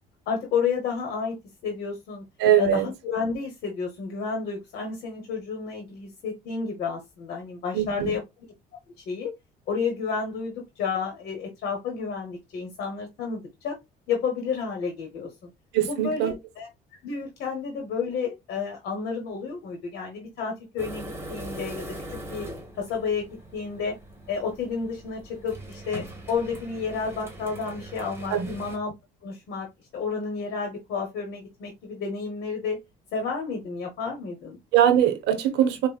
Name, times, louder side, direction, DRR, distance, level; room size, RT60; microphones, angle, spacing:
voice 1, 0.3-1.4 1.6-2.3 2.6-8.2 9.0-9.3 9.7-13.8 14.1-15.5 15.9-16.7 17.0-22.5 22.8-24.0 24.3-28.9 29.2-29.7 29.9-32.8 33.1-34.6, left 5 dB, 70° left, 0.9 m, -31 dB
voice 2, 2.4-2.9 7.7-8.2 15.7-16.3 28.3-28.5 34.7-35.9, right 10 dB, 85° right, 0.7 m, -21 dB
sound 1, 20.8-28.8, right 1 dB, 15° right, 1.2 m, -41 dB
4.9 x 2.0 x 2.3 m
cardioid pair, 110°, 17 cm